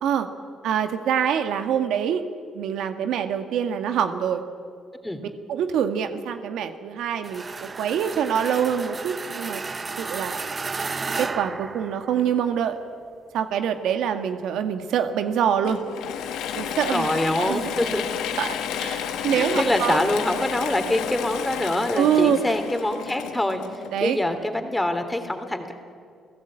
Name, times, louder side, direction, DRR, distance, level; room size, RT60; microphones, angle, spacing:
voice 1, 0.6-2.2 2.5-4.4 5.5-9.6 10.0-10.4 11.1-12.8 13.3-15.8 16.5-17.1 17.4-17.7 18.4-20.0 21.9-22.4 23.9-24.2, right 8 dB, 80° right, 7 dB, 1.6 m, -25 dB
sound 1, 7.2-12.5, right 4 dB, 30° right, 0.7 m, -33 dB
Mechanisms / Drill, 15.6-24.2, left 9 dB, 90° left, 1.5 m, -31 dB
voice 2, 16.9-18.5 19.3-23.6 24.0-25.7, left 1 dB, 10° left, 7 dB, 3.1 m, -25 dB
30.0 x 16.5 x 8.8 m, 2.3 s
cardioid pair, 90°, 0 cm